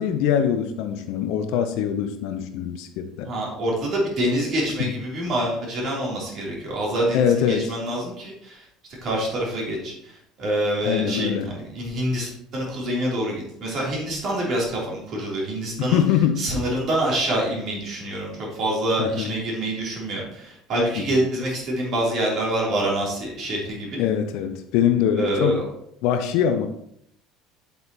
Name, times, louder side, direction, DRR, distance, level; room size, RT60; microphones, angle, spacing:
voice 1, 0.0-3.3 7.1-7.7 10.8-11.5 15.9-16.4 19.0-19.3 21.0-21.1 24.0-25.6 26.0-26.7, left 9 dB, 60° left, 8 dB, 0.6 m, -23 dB
voice 2, 3.2-8.7 9.0-16.0 16.4-24.0 25.2-25.7, right 1 dB, 45° right, -3 dB, 3.1 m, -26 dB
7.8 x 7.1 x 2.9 m, 0.73 s
figure-of-eight pair, 65°, 0 cm